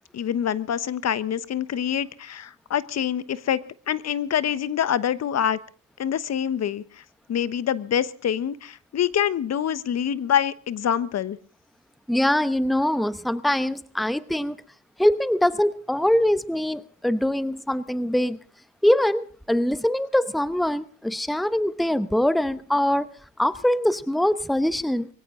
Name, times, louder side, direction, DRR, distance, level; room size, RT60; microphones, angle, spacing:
voice 1, 0.1-3.6 3.9-5.6 6.0-7.0 7.3-11.4, left 9 dB, 60° left, 16 dB, 1.2 m, -25 dB
voice 2, 12.1-14.6 15.0-18.4 18.8-23.1 23.4-25.1, left 1 dB, ahead, 14 dB, 1.0 m, -23 dB
23.0 x 16.5 x 3.8 m, 0.42 s
cardioid pair, 90°, 30 cm